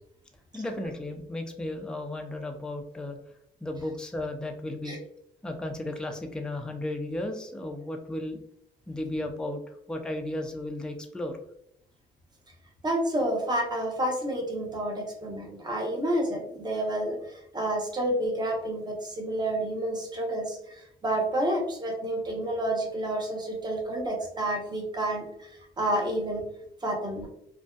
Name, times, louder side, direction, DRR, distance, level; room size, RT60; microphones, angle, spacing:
voice 1, 0.5-3.2 3.6-5.0 5.4-8.4 8.9-9.6 9.9-11.4, left 1 dB, 5° left, 4 dB, 0.4 m, -34 dB
voice 2, 12.8-25.5 25.8-26.4 26.8-27.3, right 1 dB, 20° right, 0 dB, 0.7 m, -29 dB
2.5 x 2.1 x 2.3 m, 0.74 s
cardioid pair, 90°, 20 cm